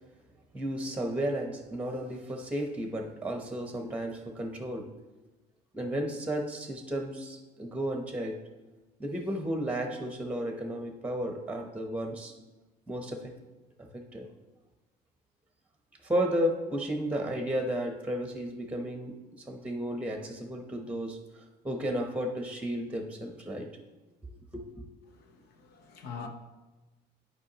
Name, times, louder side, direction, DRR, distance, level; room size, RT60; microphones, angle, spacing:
voice 1, 0.5-4.9 5.7-8.4 9.0-12.3 12.9-13.3 13.8-14.3 16.0-23.7 24.2-24.8, equal, 5° right, 0.9 m, -33 dB
voice 2, 25.1-26.3, left 6 dB, 75° left, 0.9 m, -44 dB
11.0 x 4.7 x 2.9 m
cardioid pair, 110°, 17 cm